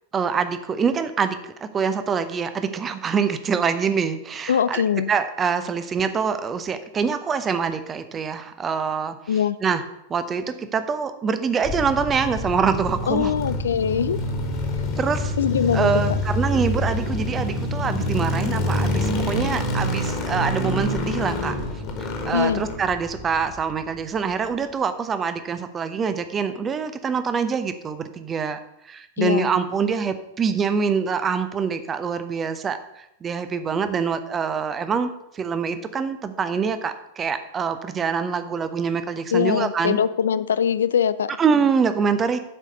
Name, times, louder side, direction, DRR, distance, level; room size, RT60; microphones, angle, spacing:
voice 1, 0.1-4.8 5.1-9.2 9.6-9.8 10.1-13.3 15.0-15.3 15.7-21.5 22.0-28.6 28.8-40.0 41.4-42.4, right 6 dB, 20° right, 10 dB, 0.7 m, -25 dB
voice 2, 4.5-5.1 9.3-9.6 13.1-14.2 15.4-15.9 22.3-22.6 29.2-29.5 39.3-41.3, left 8 dB, 65° left, 15 dB, 0.3 m, -22 dB
sound 1, 11.6-23.9, left 1 dB, 35° left, 1.7 m, -26 dB
7.6 x 4.9 x 6.7 m, 0.83 s
figure-of-eight pair, 90°, 0 cm